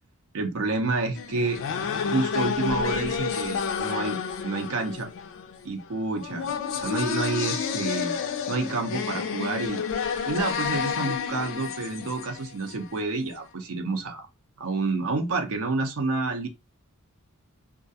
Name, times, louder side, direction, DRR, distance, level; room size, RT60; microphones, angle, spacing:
voice 1, 0.3-1.6 2.0-4.2 4.4-5.1 5.6-8.2 8.5-9.8 10.3-14.3 14.6-16.5, right 3 dB, 65° right, 0.5 m, -29 dB
sound 1, 1.2-13.0, left 6 dB, 60° left, 0.4 m, -30 dB
2.3 x 2.2 x 2.6 m
head